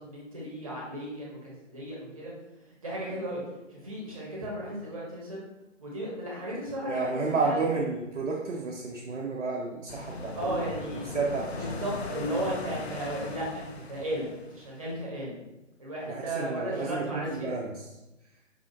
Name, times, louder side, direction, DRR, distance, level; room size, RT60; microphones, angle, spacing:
voice 1, 0.0-2.3 2.8-3.4 3.7-5.5 5.8-7.6 10.4-11.1 11.5-15.4 15.8-17.6, right 1 dB, 30° right, -4 dB, 0.9 m, -35 dB
voice 2, 6.9-10.7 11.1-11.8 16.1-17.8, right 4 dB, 75° right, -2 dB, 0.6 m, -31 dB
sound 1, 9.9-15.1, left 3 dB, 55° left, 0.5 m, -39 dB
4.7 x 2.5 x 2.6 m, 0.95 s
figure-of-eight pair, 150°, 38 cm